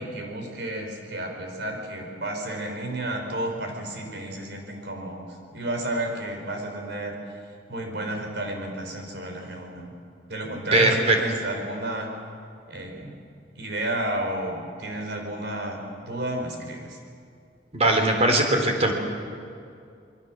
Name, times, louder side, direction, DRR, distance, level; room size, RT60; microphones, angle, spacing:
voice 1, 0.0-7.2 7.7-9.9 10.3-12.1 12.7-13.2 13.6-15.8 16.1-17.0, right 1 dB, 65° right, 2 dB, 5.3 m, -32 dB
voice 2, 10.7-11.2 17.7-18.9, right 2 dB, 35° right, 3 dB, 4.0 m, -20 dB
28.0 x 22.0 x 7.6 m, 2.4 s
head